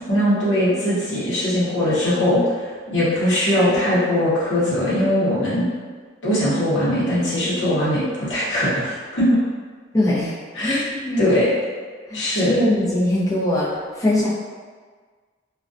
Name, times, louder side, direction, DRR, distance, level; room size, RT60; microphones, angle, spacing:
voice 1, 0.1-2.4 2.9-5.7 6.2-9.4 10.5-10.8 11.2-11.5 12.1-12.6, left 1 dB, 75° left, -9 dB, 0.8 m, -20 dB
voice 2, 9.9-10.3 10.6-11.3 12.1-13.7 14.0-14.3, left 1 dB, 20° left, -8 dB, 0.6 m, -21 dB
2.3 x 2.1 x 2.5 m, 1.5 s
head